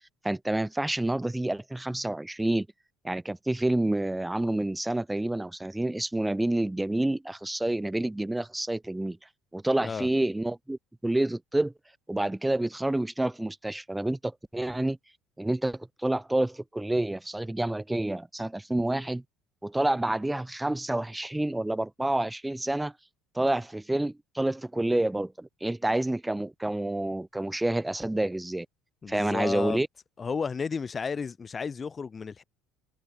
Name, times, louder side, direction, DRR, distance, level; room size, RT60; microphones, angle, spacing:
voice 1, 0.2-2.7 3.0-9.2 9.5-11.7 12.1-15.0 15.4-19.2 19.6-22.9 23.4-28.7 29.1-29.9, right 1 dB, 10° right, 3.5 m, -28 dB
voice 2, 29.0-29.8 30.2-32.4, left 5 dB, 25° left, 2.9 m, -32 dB
figure-of-eight pair, 60°, 0 cm